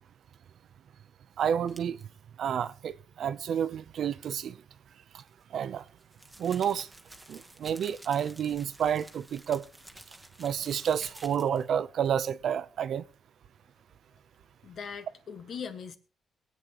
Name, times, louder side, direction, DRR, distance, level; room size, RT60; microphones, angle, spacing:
voice 1, 1.4-2.0 2.4-4.6 5.5-5.8 6.4-6.9 7.3-9.6 10.4-13.0, right 8 dB, 65° right, 0.6 m, -30 dB
sound 1, 1.7-2.0 5.1-11.7, right 1 dB, 10° right, 1.3 m, -51 dB
voice 2, 14.6-16.0, left 6 dB, 60° left, 1.6 m, -40 dB
22.5 x 8.5 x 3.0 m
cardioid pair, 120°, 0 cm